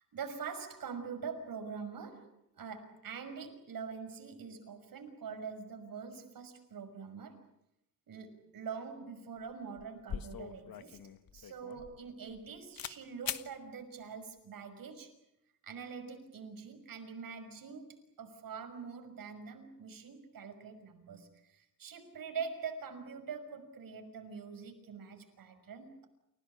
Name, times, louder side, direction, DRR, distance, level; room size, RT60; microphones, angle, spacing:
voice 1, 0.0-2.3 2.6-7.4 8.1-11.0 11.3-15.1 15.6-26.1, right 6 dB, 85° right, 6 dB, 6.0 m, -44 dB
sound 1, 9.4-9.5 9.8-12.4 12.8-13.0 13.2-13.5, left 8 dB, 85° left, 1.6 m, -42 dB
29.5 x 17.5 x 9.8 m, 0.82 s
wide cardioid pair, 160°, 34 cm